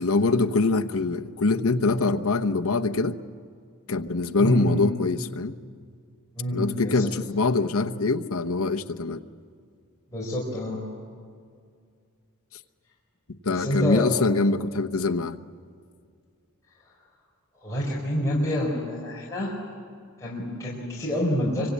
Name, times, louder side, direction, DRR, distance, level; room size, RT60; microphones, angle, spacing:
voice 1, 0.0-3.1 3.9-5.5 6.5-9.2 13.4-15.4, left 3 dB, 70° left, 7 dB, 1.0 m, -24 dB
voice 2, 4.4-4.8 6.4-7.1 10.1-10.8 13.5-14.1 17.6-19.6 20.2-21.7, equal, 15° left, -6 dB, 4.5 m, -27 dB
26.0 x 25.0 x 8.5 m, 2.2 s
head